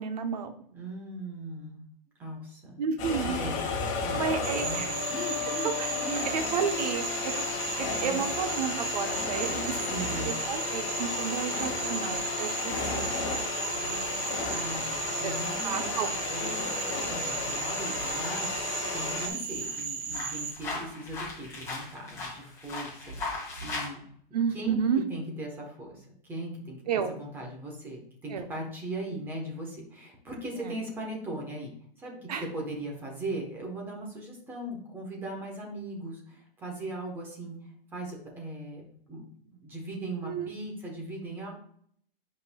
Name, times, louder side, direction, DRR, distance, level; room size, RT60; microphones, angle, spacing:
voice 1, 0.0-0.5 2.8-3.4 4.1-5.0 5.6-7.4 7.8-9.9 10.2-14.1 15.2-15.3 15.6-16.3 24.3-25.0 26.9-27.1 28.3-28.5 30.6-30.8 32.3-32.4 40.2-40.5, right 7 dB, 45° right, 7 dB, 0.8 m, -32 dB
voice 2, 0.7-1.8 2.2-2.9 3.2-5.7 6.0-6.3 8.0-8.3 9.9-10.4 14.5-18.5 18.9-24.0 24.5-24.8 25.1-26.8 27.2-31.7 32.0-37.6 37.9-39.3 39.5-41.5, right 1 dB, 5° right, -1 dB, 1.0 m, -39 dB
sound 1, 3.0-19.3, left 5 dB, 35° left, 1.7 m, -33 dB
Cricket / Frog, 4.4-20.5, right 5 dB, 65° right, 2.4 m, -35 dB
sound 2, 11.6-23.9, left 2 dB, 10° left, 1.9 m, -42 dB
9.9 x 5.4 x 2.2 m, 0.63 s
hypercardioid pair, 175°, 29 cm